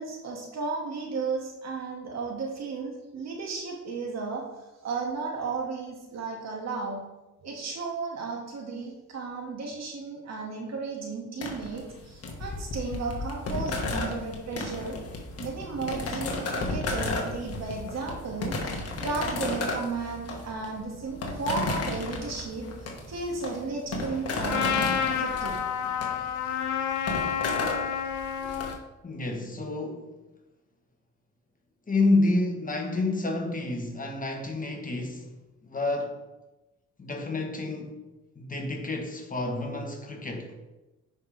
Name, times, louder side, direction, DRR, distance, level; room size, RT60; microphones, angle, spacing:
voice 1, 0.0-4.4 4.8-7.0 7.4-15.0 15.4-22.7 23.1-25.6, right 4 dB, 60° right, 2.1 m, -34 dB
sound 1, 11.4-28.7, left 2 dB, 55° left, 1.7 m, -33 dB
Trumpet, 24.5-28.8, left 8 dB, 85° left, 0.8 m, -29 dB
voice 2, 29.0-30.2 31.9-35.3 35.6-36.2 37.0-38.0 38.4-40.5, left 2 dB, 25° left, 1.3 m, -29 dB
10.0 x 5.2 x 3.4 m
cardioid pair, 90°, 30 cm